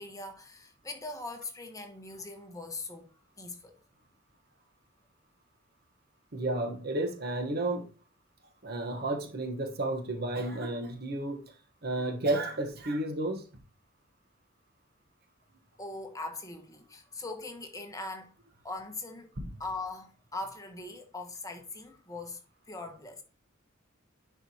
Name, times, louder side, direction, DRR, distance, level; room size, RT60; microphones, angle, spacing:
voice 1, 0.0-3.8 15.8-18.3 18.6-19.3 19.6-22.4 22.7-23.2, left 2 dB, 15° left, 1.0 m, -41 dB
voice 2, 6.3-7.8 8.6-11.4 11.8-13.4 19.4-19.5, right 2 dB, 50° right, 1.1 m, -32 dB
10.5 x 4.7 x 2.8 m
head